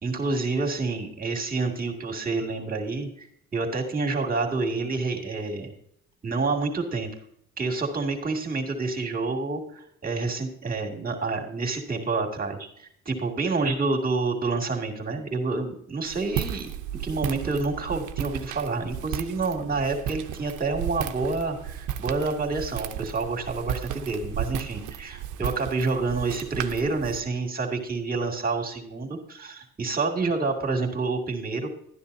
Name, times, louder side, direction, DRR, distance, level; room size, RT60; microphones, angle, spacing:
voice 1, 0.0-3.3 3.5-5.7 6.2-7.1 7.6-16.7 17.0-31.7, right 3 dB, 30° right, 2 dB, 2.4 m, -28 dB
Walk footsteps, 16.1-27.2, right 10 dB, 75° right, 0.7 m, -34 dB
12.5 x 10.0 x 2.7 m, 0.71 s
cardioid pair, 90°, 30 cm